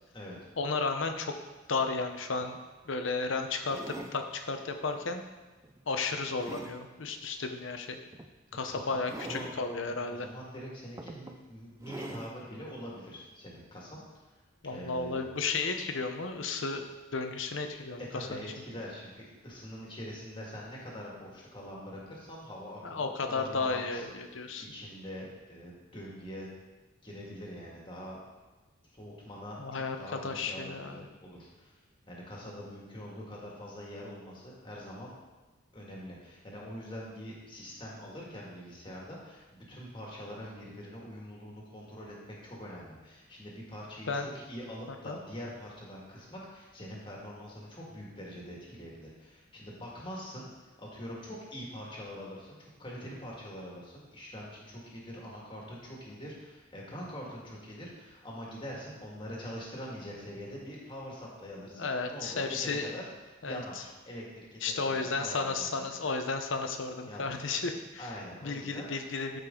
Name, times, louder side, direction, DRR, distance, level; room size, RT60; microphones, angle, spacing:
voice 1, 0.6-1.3 1.7-2.6 2.9-5.2 5.9-8.0 8.5-10.3 14.6-16.8 17.1-18.0 18.3-18.4 22.8-24.6 29.6-30.0 30.2-31.1 44.1-44.3 45.1-45.2 61.7-62.9 63.4-63.6 64.6-68.1 68.4-69.4, left 4 dB, 75° left, 6 dB, 0.8 m, -33 dB
sound 1, 2.3-2.5 3.6-4.2 4.9-5.1 5.6-6.8 8.1-8.3 9.0-9.6 10.4-10.5 11.0-11.4 11.8-12.4 13.1-13.2, right 1 dB, 15° right, 0.4 m, -44 dB
voice 2, 8.6-14.0 14.7-15.3 18.1-24.0 24.6-26.5 27.0-28.2 28.9-29.6 30.0-31.7 32.1-35.1 35.7-63.1 63.4-65.9 67.1-67.4 68.0-68.9, equal, 25° left, -4 dB, 2.0 m, -44 dB
12.0 x 5.3 x 3.8 m, 1.2 s
head